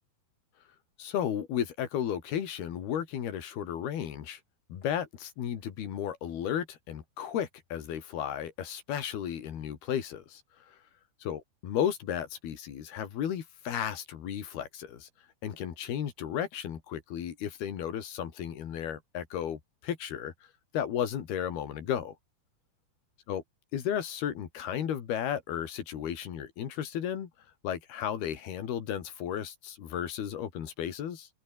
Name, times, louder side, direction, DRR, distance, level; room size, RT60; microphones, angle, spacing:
voice 1, 1.0-4.4 4.7-10.4 11.2-15.1 15.4-20.3 20.7-22.1 23.3-23.4 23.7-27.3 27.6-31.3, left 9 dB, 65° left, 4.4 m, -34 dB
omnidirectional pair, 5.0 m